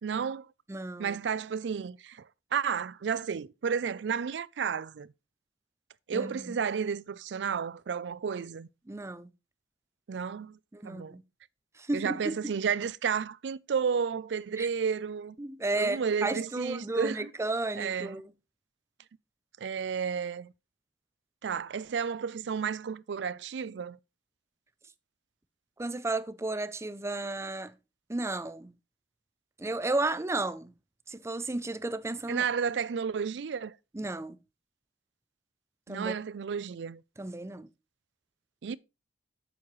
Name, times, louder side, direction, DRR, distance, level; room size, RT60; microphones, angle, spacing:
voice 1, 0.0-0.5 1.0-5.1 6.1-8.7 10.1-10.6 10.8-11.2 11.9-15.4 15.8-17.3 17.8-18.2 19.6-20.5 21.4-24.0 32.3-33.8 35.9-37.0 38.6-38.8, right 6 dB, 80° right, 0.4 m, -32 dB
voice 2, 0.7-1.2 6.1-6.5 8.9-9.3 10.7-11.2 11.8-12.4 14.6-14.7 15.4-18.3 25.8-27.7 28.1-28.7 29.6-30.7 31.1-32.4 33.9-34.4 35.9-36.1 37.2-37.7, right 2 dB, 15° right, 0.5 m, -33 dB
8.4 x 7.2 x 3.1 m
head